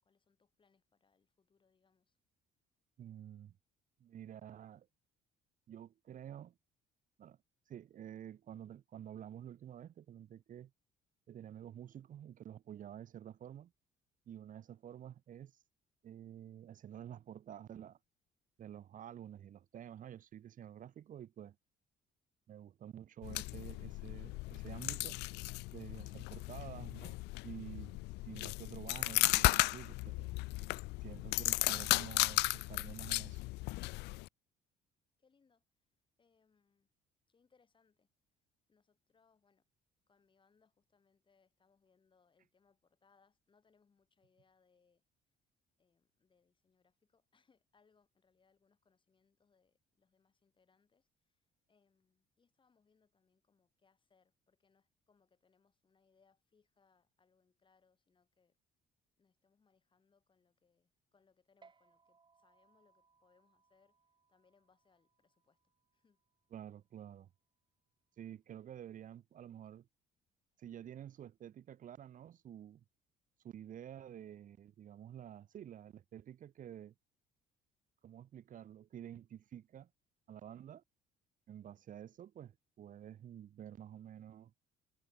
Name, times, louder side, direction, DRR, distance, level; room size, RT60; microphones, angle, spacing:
voice 1, 0.0-2.2 35.2-35.6 36.2-36.9 37.3-38.1 38.7-39.7 40.1-45.0 45.8-51.4 51.7-58.6 59.2-64.0 64.3-65.6 65.9-66.2, left 5 dB, 30° left, 7.8 m, -74 dB
voice 2, 3.0-3.6 4.0-4.9 5.7-6.5 7.2-7.4 7.7-10.7 11.3-13.7 14.3-15.5 16.0-18.0 18.6-21.6 22.5-25.2 25.7-30.3 31.0-33.4 66.5-67.3 68.2-69.9 70.6-72.8 73.4-76.9 78.0-79.9 80.3-80.8 81.5-84.5, right 10 dB, 50° right, 1.4 m, -50 dB
sound 1, 23.2-34.3, left 22 dB, 85° left, 0.4 m, -35 dB
sound 2, 61.6-68.4, right 5 dB, 30° right, 4.9 m, -71 dB
cardioid pair, 110°, 17 cm